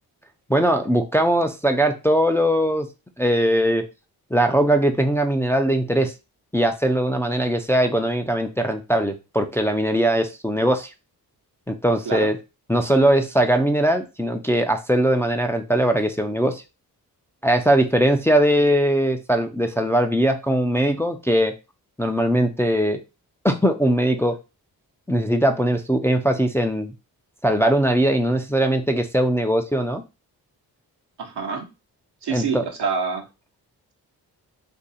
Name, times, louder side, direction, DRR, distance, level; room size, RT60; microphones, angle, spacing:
voice 1, 0.5-2.9 3.2-3.8 4.3-6.1 6.5-10.9 11.7-12.4 12.7-16.6 17.4-21.5 22.0-23.0 23.4-24.4 25.1-26.9 27.4-30.0 32.3-32.6, right 1 dB, 5° left, 5 dB, 0.4 m, -20 dB
voice 2, 31.2-31.7 32.2-33.2, right 5 dB, 80° right, 3 dB, 1.0 m, -26 dB
2.7 x 2.6 x 4.1 m, 0.28 s
cardioid pair, 65°, 39 cm